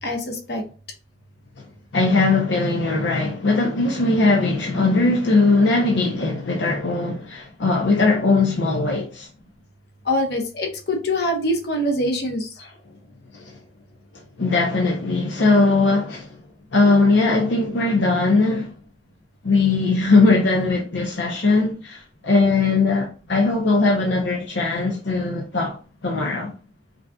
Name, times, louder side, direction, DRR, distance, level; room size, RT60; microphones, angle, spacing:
voice 1, 0.0-0.6 10.0-12.5, left 1 dB, 60° left, 1.1 m, -24 dB
voice 2, 1.9-9.3 12.6-12.7 13.3-13.6 14.4-16.4 16.7-18.7 19.4-26.5, left 3 dB, 80° left, 0.7 m, -20 dB
5.1 x 2.8 x 2.3 m
head